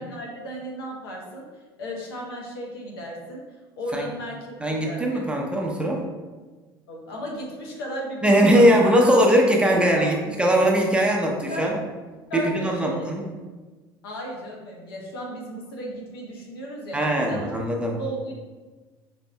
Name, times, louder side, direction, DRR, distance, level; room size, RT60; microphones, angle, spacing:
voice 1, 0.0-1.4 1.8-3.4 3.8-5.2 6.9-8.7 8.9-9.0 10.0-10.1 11.5-11.8 12.3-13.1 14.0-18.3, equal, 75° left, -2 dB, 0.9 m, -35 dB
voice 2, 4.6-6.0 8.2-11.7 12.3-13.2 16.9-18.0, equal, 10° right, -1 dB, 0.8 m, -20 dB
5.2 x 3.4 x 2.2 m, 1.3 s
figure-of-eight pair, 65°, 13 cm